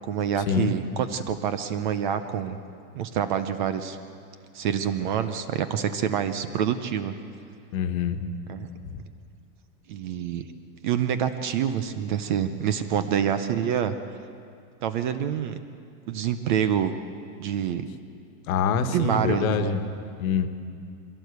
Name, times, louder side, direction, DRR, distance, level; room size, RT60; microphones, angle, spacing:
voice 1, 0.1-2.6 2.9-4.0 4.5-7.2 8.5-8.7 9.9-10.4 10.8-13.9 14.8-15.6 16.1-16.9 17.4-17.9 18.9-19.8, right 8 dB, 30° right, 10 dB, 0.5 m, -26 dB
voice 2, 7.7-8.2 18.5-19.8 20.2-20.5, left 6 dB, 60° left, 8 dB, 1.5 m, -25 dB
22.5 x 16.5 x 8.0 m, 2.4 s
supercardioid pair, 180°, 47 cm